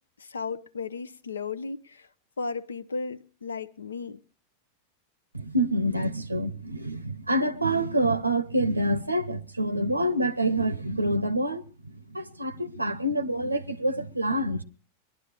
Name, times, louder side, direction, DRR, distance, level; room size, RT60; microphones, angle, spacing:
voice 1, 0.2-2.1 2.4-4.2, left 4 dB, 70° left, 0.7 m, -35 dB
voice 2, 5.3-14.6, right 1 dB, 85° right, 0.7 m, -27 dB
22.5 x 11.5 x 3.3 m
figure-of-eight pair, 90°, 0 cm